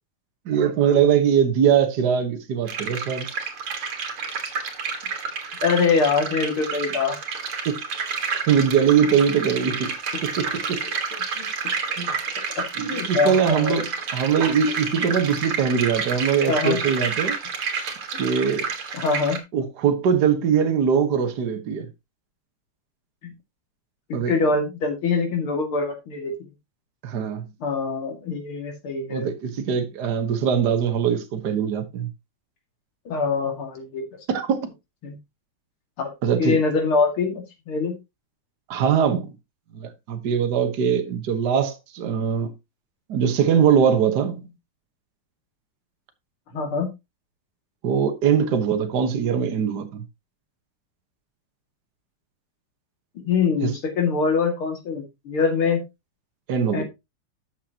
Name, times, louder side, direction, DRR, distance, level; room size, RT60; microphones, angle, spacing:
voice 1, 0.4-3.3 7.6-7.8 8.3-9.9 10.2-10.8 11.9-12.2 12.8-17.3 18.2-18.7 19.5-21.9 24.1-24.3 27.0-27.4 29.1-32.1 34.3-34.7 36.2-36.6 38.7-39.3 39.7-42.5 43.1-44.5 47.8-50.0 53.6-53.7 56.5-56.8, right 7 dB, 55° right, 1.7 m, -22 dB
sound 1, 2.7-19.4, right 5 dB, 85° right, 2.6 m, -30 dB
voice 2, 5.6-7.2 11.4-11.5 11.9-12.0 12.8-13.7 16.5-16.8 18.9-19.4 23.2-23.3 24.1-26.3 27.6-29.3 33.1-34.0 35.0-35.2 36.0-36.1 36.4-37.9 46.5-46.9 53.3-55.8 56.7-56.8, left 4 dB, 80° left, 3.1 m, -24 dB
12.0 x 6.6 x 2.9 m
omnidirectional pair, 2.3 m